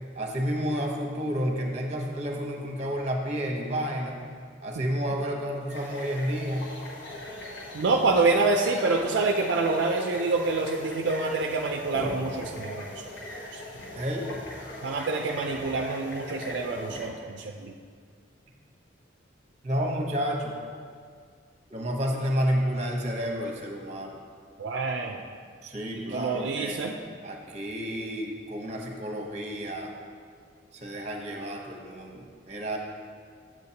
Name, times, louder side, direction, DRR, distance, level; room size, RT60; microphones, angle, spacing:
voice 1, 0.1-4.2 4.6-6.7 13.9-14.3 19.6-20.5 21.7-24.2 25.6-26.8 27.2-29.9 30.7-32.8, equal, 35° right, 1 dB, 0.9 m, -30 dB
sound 1, 5.7-17.1, left 1 dB, 70° left, 1.0 m, -40 dB
voice 2, 7.7-12.9 13.5-13.6 14.8-17.7 24.6-25.2 26.1-26.9, right 3 dB, 70° right, 2 dB, 0.4 m, -27 dB
7.8 x 7.5 x 2.8 m, 2.1 s
head